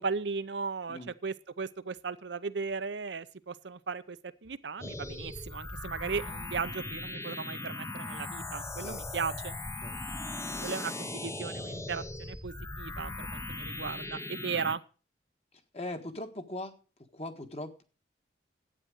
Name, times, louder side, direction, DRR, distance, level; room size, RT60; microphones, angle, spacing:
voice 1, 0.0-9.5 10.6-14.8, right 5 dB, 70° right, 12 dB, 0.7 m, -36 dB
sound 1, 4.8-14.8, left 2 dB, 15° left, 0.7 m, -39 dB
voice 2, 15.7-16.8 17.1-17.8, left 1 dB, 35° left, 6 dB, 1.5 m, -40 dB
12.0 x 9.0 x 6.5 m, 0.37 s
head